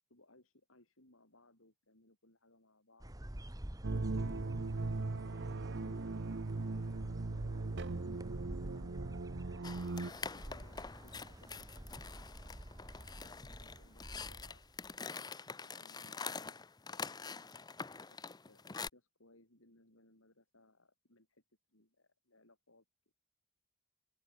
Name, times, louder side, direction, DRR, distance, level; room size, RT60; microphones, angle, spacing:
voice 1, 0.1-3.1 4.0-6.9 7.7-9.0 9.6-14.6 15.6-16.6 16.9-17.5 18.1-18.2 18.5-21.4 21.7-23.1, left 2 dB, 75° left, 7.3 m, -66 dB
sound 1, 3.0-15.0, right 1 dB, 15° right, 1.3 m, -49 dB
sound 2, 3.8-10.1, right 3 dB, 60° right, 0.8 m, -38 dB
sound 3, 9.6-18.9, left 5 dB, 20° left, 0.6 m, -46 dB
open air
head